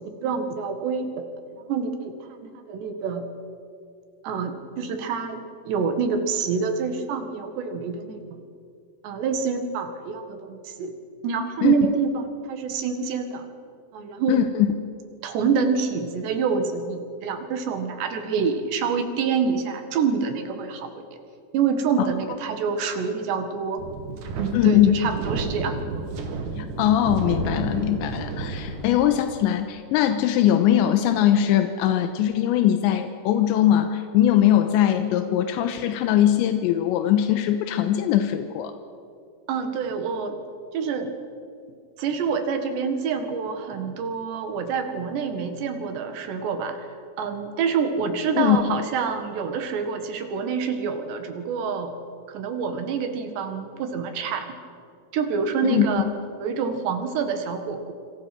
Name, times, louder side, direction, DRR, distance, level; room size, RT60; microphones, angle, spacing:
voice 1, 0.2-1.3 1.5-3.3 4.2-8.4 9.0-10.9 11.2-13.5 13.9-14.4 15.2-21.0 21.5-23.8 24.4-26.1 39.5-40.4 40.7-41.1 42.0-46.9 47.2-52.0 52.3-54.6 55.1-56.1 56.4-57.9, right 5 dB, 70° right, 7 dB, 3.9 m, -27 dB
voice 2, 14.3-14.7 22.0-22.1 24.5-24.9 26.6-38.7 48.4-48.6 55.6-55.9, left 11 dB, 85° left, 8 dB, 3.2 m, -21 dB
Wind, 23.8-29.4, right 3 dB, 50° right, 3.2 m, -31 dB
27.5 x 25.0 x 6.1 m, 2.3 s
omnidirectional pair, 5.2 m